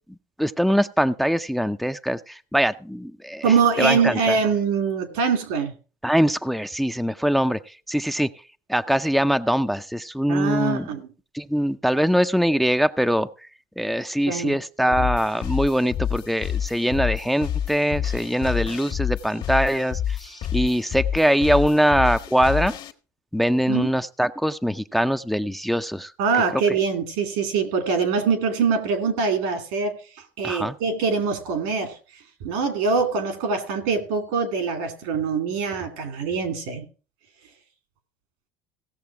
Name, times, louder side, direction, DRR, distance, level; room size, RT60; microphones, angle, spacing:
voice 1, 0.4-4.4 6.0-8.3 8.7-10.9 11.3-13.5 13.8-22.7 23.3-26.1 26.5-26.8 30.4-30.7, equal, ahead, 0.5 m, -22 dB
voice 2, 3.4-5.7 10.3-11.0 14.3-14.5 23.7-23.9 26.2-29.9 30.4-31.9 32.4-36.8, right 5 dB, 80° right, 2.5 m, -23 dB
sound 1, 14.9-22.9, left 9 dB, 55° left, 1.4 m, -28 dB
16.5 x 6.6 x 4.7 m
supercardioid pair, 95°, 10 cm